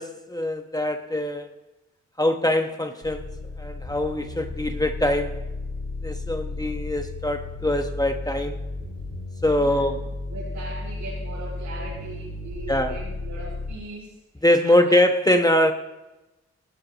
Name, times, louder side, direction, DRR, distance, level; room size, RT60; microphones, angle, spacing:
voice 1, 0.0-1.5 2.2-3.3 3.6-5.4 6.0-8.6 9.4-10.0 12.7-12.9 14.4-15.7, left 1 dB, 10° left, 5 dB, 1.1 m, -23 dB
sound 1, 3.0-13.8, left 2 dB, 65° left, 5.3 m, -34 dB
voice 2, 9.5-10.0 10.3-15.0, right 2 dB, 80° right, -7 dB, 6.5 m, -39 dB
17.5 x 17.5 x 3.0 m, 1.0 s
cardioid pair, 60°, 30 cm